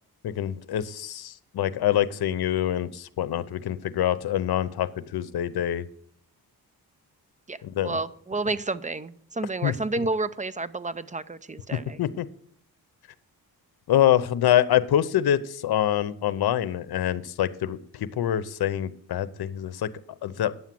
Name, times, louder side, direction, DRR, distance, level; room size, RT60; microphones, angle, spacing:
voice 1, 0.2-5.8 7.6-8.0 9.6-9.7 11.7-12.3 13.9-19.9 20.2-20.5, left 11 dB, 75° left, 16 dB, 0.8 m, -25 dB
voice 2, 7.8-12.0, right 3 dB, 20° right, 14 dB, 0.6 m, -30 dB
9.7 x 7.2 x 7.6 m, 0.63 s
cardioid pair, 90°, 38 cm